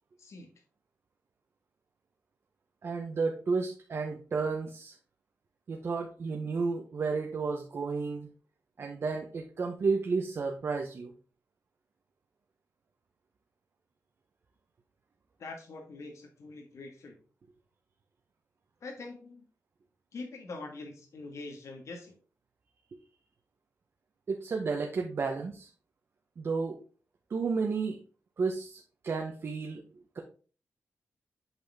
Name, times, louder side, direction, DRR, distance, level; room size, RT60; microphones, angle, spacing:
voice 1, 0.2-0.5 15.4-17.1 18.8-19.4 20.1-22.1, left 3 dB, 75° left, 2 dB, 1.6 m, -44 dB
voice 2, 2.8-4.9 5.7-8.3 8.8-11.1 24.3-25.7 26.4-26.8 27.3-28.0 28.4-29.8 30.1-30.2, right 4 dB, 50° right, 2 dB, 0.9 m, -32 dB
8.0 x 4.3 x 3.4 m, 0.38 s
wide cardioid pair, 120°, 5 cm